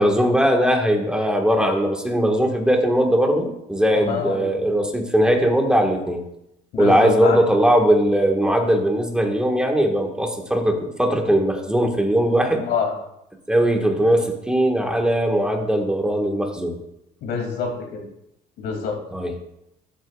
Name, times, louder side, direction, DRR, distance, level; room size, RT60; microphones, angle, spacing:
voice 1, 0.0-6.2 6.8-12.6 13.5-16.8 19.1-19.3, equal, 5° right, 2 dB, 1.6 m, -19 dB
voice 2, 3.9-4.5 6.7-7.4 12.7-12.9 17.2-18.0 18.6-19.0, left 5 dB, 75° left, 1 dB, 2.7 m, -26 dB
13.5 x 8.2 x 2.4 m, 0.81 s
cardioid pair, 110°, 17 cm